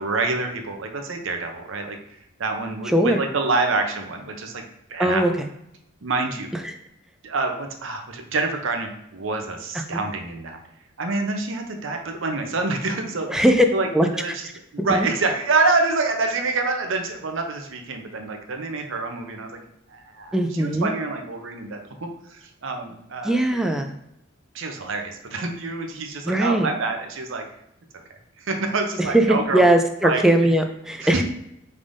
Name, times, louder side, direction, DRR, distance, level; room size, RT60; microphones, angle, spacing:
voice 1, 0.0-2.0 2.4-4.6 4.9-5.2 6.0-6.5 7.2-10.6 11.0-13.4 13.7-19.6 19.9-23.4 23.6-23.7 24.5-27.4 28.4-29.6 30.0-30.2 31.0-31.2, right 3 dB, 65° right, 4 dB, 0.7 m, -27 dB
voice 2, 2.9-3.2 5.0-5.3 6.6-6.7 9.9-10.0 13.3-13.7 13.9-14.1 14.8-15.1 20.3-20.9 23.2-23.9 26.2-26.7 29.1-31.2, right 1 dB, 5° right, 5 dB, 0.3 m, -19 dB
5.2 x 3.4 x 2.6 m, 0.79 s
head